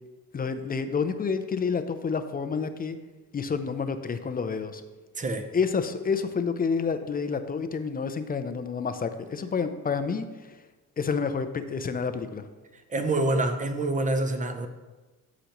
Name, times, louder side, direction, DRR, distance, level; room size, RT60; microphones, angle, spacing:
voice 1, 0.3-3.0 3.3-4.8 5.5-10.3 11.0-12.4, left 5 dB, 25° left, 9 dB, 0.5 m, -29 dB
voice 2, 5.2-5.5 12.9-14.7, right 2 dB, 20° right, 8 dB, 0.7 m, -26 dB
13.0 x 5.1 x 3.0 m, 1.2 s
cardioid pair, 110°, 38 cm